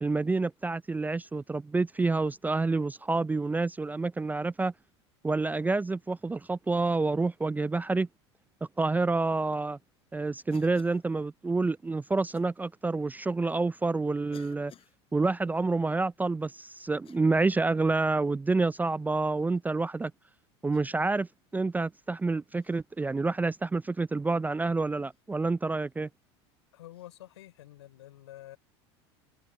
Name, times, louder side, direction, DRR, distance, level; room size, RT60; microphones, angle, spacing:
voice 1, 0.0-4.7 5.2-8.1 8.8-9.8 10.1-14.7 15.1-20.1 20.6-26.1, right 3 dB, 10° right, 0.4 m, -28 dB
Cough, 10.5-11.1 12.3-12.5 13.4-13.5 14.3-15.0 16.9-17.5 18.0-18.2 19.3-19.7 20.7-21.1 22.6-22.8 25.0-25.2 26.9-27.1, left 10 dB, 40° left, 7.2 m, -56 dB
voice 2, 26.7-28.6, left 14 dB, 80° left, 5.7 m, -48 dB
hypercardioid pair, 85°, 14 cm